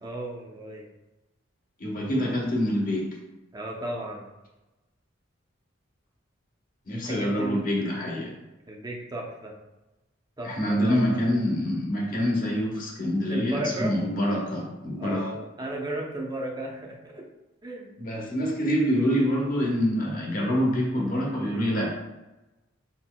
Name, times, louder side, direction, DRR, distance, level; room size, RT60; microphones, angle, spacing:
voice 1, 0.0-0.9 3.5-4.3 7.1-7.6 8.7-9.6 10.4-11.2 13.3-14.0 15.0-17.2 17.6-17.9, right 1 dB, 20° right, -1 dB, 0.6 m, -35 dB
voice 2, 1.8-3.0 6.9-8.3 10.4-15.3 18.0-21.9, equal, 45° left, -1 dB, 1.0 m, -26 dB
4.9 x 4.2 x 2.2 m, 1.0 s
head